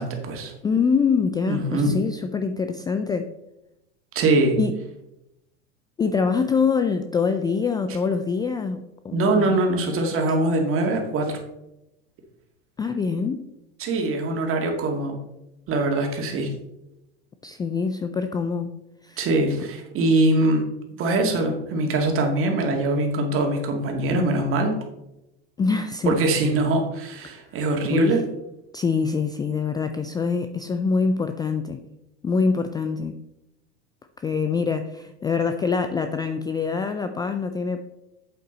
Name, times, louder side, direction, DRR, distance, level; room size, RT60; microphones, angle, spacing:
voice 1, 0.0-0.5 1.5-1.9 4.1-4.6 9.1-11.4 13.8-15.2 15.7-16.5 19.2-20.6 21.0-24.7 26.0-28.2, right 2 dB, 40° right, 2 dB, 2.3 m, -22 dB
voice 2, 0.6-3.3 4.6-4.7 6.0-9.6 12.8-13.4 17.4-18.7 19.0-19.2 25.6-26.5 27.8-28.2 28.7-31.8 32.2-33.1 34.2-37.8, left 5 dB, 10° left, 8 dB, 0.3 m, -24 dB
8.1 x 7.8 x 3.9 m, 0.90 s
hypercardioid pair, 110°, 34 cm